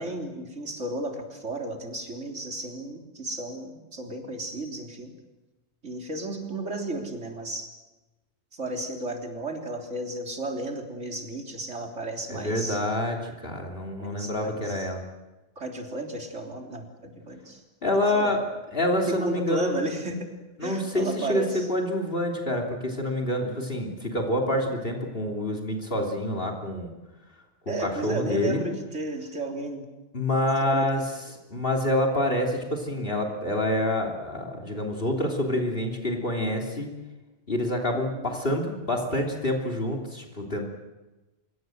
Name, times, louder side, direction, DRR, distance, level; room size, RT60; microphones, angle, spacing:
voice 1, 0.0-5.1 5.8-7.7 8.5-12.8 14.0-14.9 15.6-17.6 18.1-18.4 19.1-20.3 20.6-21.7 27.7-29.9 30.6-31.0 37.9-38.4, right 2 dB, 85° right, 3 dB, 3.8 m, -34 dB
voice 2, 12.3-15.0 17.8-18.4 18.7-19.8 20.6-26.9 27.7-28.6 30.1-31.0 31.5-36.9 37.5-40.7, left 1 dB, 50° left, 4 dB, 3.4 m, -27 dB
26.0 x 22.5 x 7.9 m, 1.1 s
omnidirectional pair, 1.2 m